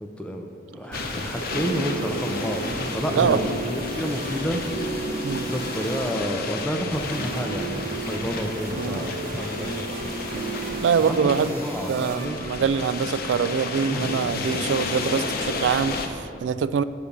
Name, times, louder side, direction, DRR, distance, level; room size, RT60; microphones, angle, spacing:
voice 1, 0.0-2.7 2.9-4.6 5.5-9.9 11.1-11.2 11.5-12.5 13.9-14.1, equal, 5° left, 3 dB, 0.4 m, -30 dB
sound 1, 0.7-13.5, right 2 dB, 55° right, 0.9 m, -33 dB
sound 2, 0.9-16.1, left 3 dB, 55° left, 0.7 m, -32 dB
voice 2, 8.8-9.1 10.8-11.5 11.9-16.8, right 6 dB, 85° right, 14 dB, 0.3 m, -24 dB
6.8 x 5.0 x 7.0 m, 2.5 s
head